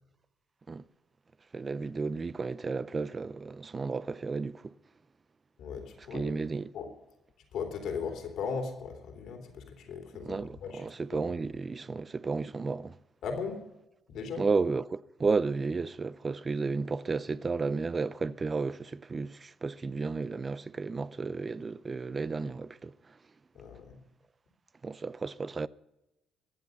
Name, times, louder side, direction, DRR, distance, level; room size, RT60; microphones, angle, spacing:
voice 1, 1.5-4.7 6.1-6.7 10.2-13.0 14.4-23.2 24.8-25.7, right 4 dB, 30° right, 0.6 m, -33 dB
voice 2, 5.6-6.3 6.7-6.9 7.5-11.2 13.2-13.6 14.1-14.4 23.5-24.0, left 5 dB, 80° left, 3.5 m, -38 dB
23.0 x 8.3 x 5.4 m
cardioid pair, 90°, 0 cm